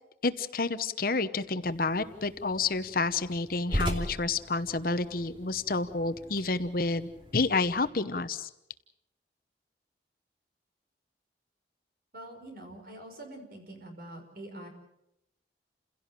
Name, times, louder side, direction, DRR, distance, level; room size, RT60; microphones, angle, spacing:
voice 1, 0.2-8.5, left 3 dB, 55° left, 12 dB, 1.0 m, -29 dB
sound 1, 1.6-7.9, equal, 30° right, 2.7 m, -39 dB
voice 2, 12.1-14.7, right 1 dB, 55° right, 4 dB, 5.5 m, -45 dB
29.0 x 16.5 x 7.5 m, 0.86 s
head